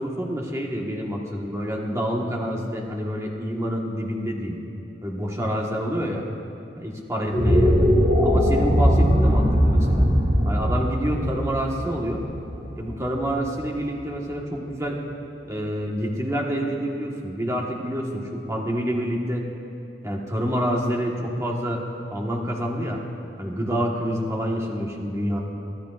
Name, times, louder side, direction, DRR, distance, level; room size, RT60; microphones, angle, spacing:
voice 1, 0.0-4.6 5.0-6.2 6.8-7.9 8.2-10.1 10.4-12.2 12.8-15.0 15.5-19.4 20.0-21.8 22.1-23.0 23.4-25.4, equal, 15° right, -1 dB, 1.5 m, -27 dB
sound 1, 7.2-13.6, equal, 50° right, 2.5 m, -20 dB
23.0 x 13.5 x 2.5 m, 2.9 s
head